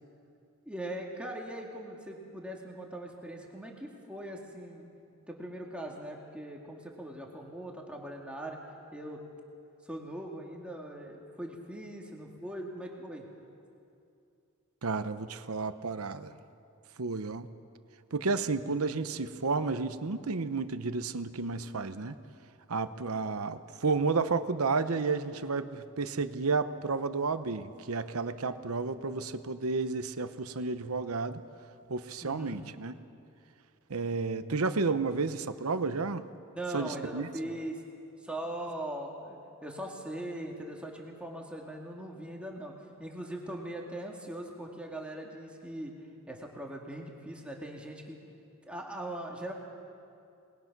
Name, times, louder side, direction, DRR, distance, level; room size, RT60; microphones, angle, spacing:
voice 1, 0.7-4.9 5.3-8.6 8.9-9.2 9.8-13.2 32.2-32.6 36.5-37.8 38.2-42.7 43.0-45.9 46.3-48.2 48.6-49.5, right 1 dB, 5° right, -1 dB, 2.1 m, -40 dB
voice 2, 14.8-16.3 17.0-17.5 18.1-22.2 22.7-31.4 31.9-32.9 33.9-36.2 36.7-37.3, right 4 dB, 80° right, 11 dB, 0.9 m, -31 dB
28.0 x 20.0 x 6.0 m, 2.6 s
head